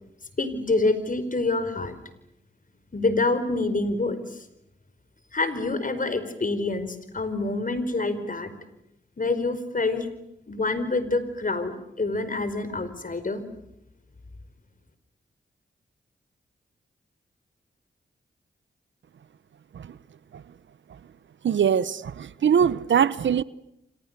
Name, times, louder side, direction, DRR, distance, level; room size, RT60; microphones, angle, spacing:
voice 1, 0.4-2.0 2.9-4.4 5.3-8.5 9.2-10.1 10.5-13.4, left 3 dB, 45° left, 4.9 m, -26 dB
voice 2, 21.4-23.4, right 8 dB, 75° right, 1.0 m, -22 dB
30.0 x 26.5 x 6.8 m
cardioid pair, 45°, 19 cm